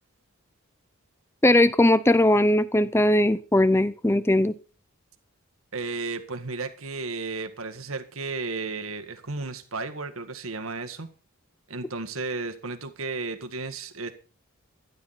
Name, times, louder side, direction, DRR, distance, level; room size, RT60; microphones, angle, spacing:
voice 1, 1.4-4.5, left 1 dB, 10° left, 0.7 m, -19 dB
voice 2, 5.7-11.1 11.7-14.1, right 3 dB, 75° right, 1.8 m, -33 dB
15.5 x 12.0 x 4.3 m
head